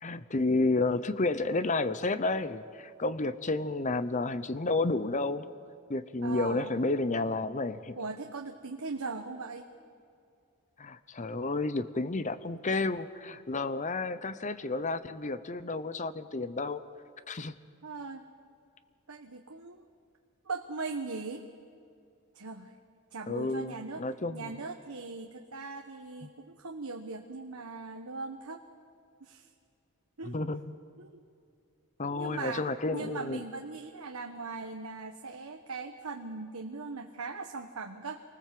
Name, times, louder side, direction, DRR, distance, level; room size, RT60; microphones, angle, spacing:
voice 1, 0.0-5.4 5.9-8.0 10.8-16.8 17.3-17.5 23.3-24.5 30.3-30.7 32.0-33.4, left 3 dB, 35° left, 13 dB, 0.8 m, -31 dB
voice 2, 6.2-6.7 8.0-9.7 17.8-18.2 19.1-19.8 20.4-21.4 22.3-22.7 23.1-24.1 24.3-28.6 29.2-29.5 30.2-30.4 31.0-31.2 32.1-32.6 32.9-38.2, right 3 dB, 90° right, 4 dB, 1.2 m, -39 dB
27.0 x 20.0 x 7.7 m, 2.4 s
head